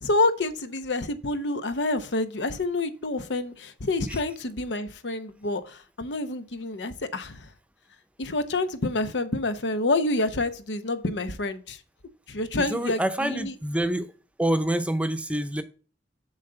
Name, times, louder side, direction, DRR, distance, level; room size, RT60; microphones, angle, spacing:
voice 1, 0.0-7.5 8.2-11.8 12.3-13.5, left 2 dB, 85° left, 0.8 m, -28 dB
voice 2, 12.6-14.1 14.4-15.6, right 1 dB, 5° right, 0.7 m, -26 dB
7.2 x 4.1 x 6.7 m
head